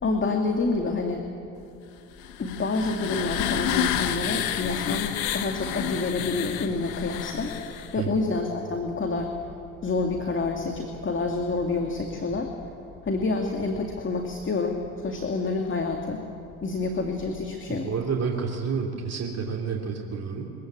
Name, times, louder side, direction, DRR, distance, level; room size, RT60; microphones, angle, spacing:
voice 1, 0.0-1.3 2.4-7.6 7.9-9.3 9.8-12.5 13.0-16.2 16.6-17.9, left 3 dB, 30° left, 3 dB, 2.2 m, -28 dB
sound 1, 2.2-8.0, left 10 dB, 75° left, 1.3 m, -30 dB
voice 2, 17.7-20.5, right 6 dB, 35° right, 0 dB, 2.7 m, -29 dB
24.0 x 15.0 x 8.7 m, 2.7 s
hypercardioid pair, 65°, 42 cm